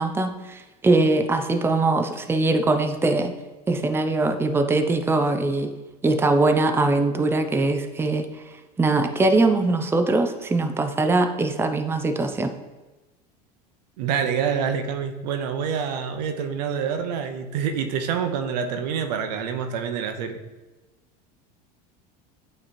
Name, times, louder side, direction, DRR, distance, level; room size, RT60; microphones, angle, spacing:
voice 1, 0.0-3.3 3.7-5.7 6.0-8.3 8.8-12.5, right 2 dB, 10° right, 7 dB, 0.5 m, -22 dB
voice 2, 14.0-20.4, right 7 dB, 80° right, 7 dB, 0.8 m, -27 dB
8.7 x 3.2 x 4.3 m, 1.1 s
supercardioid pair, 100°, 21 cm